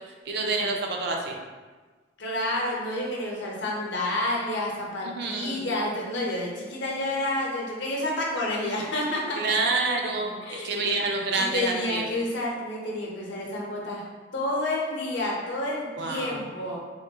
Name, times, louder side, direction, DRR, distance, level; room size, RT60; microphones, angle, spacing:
voice 1, 0.3-1.4 5.0-5.7 9.4-12.0 16.0-16.5, right 3 dB, 60° right, 2 dB, 0.4 m, -28 dB
voice 2, 2.2-9.4 10.4-11.0 11.3-14.0 14.3-16.8, left 1 dB, 75° left, -3 dB, 0.7 m, -29 dB
3.4 x 2.2 x 2.7 m, 1.4 s
head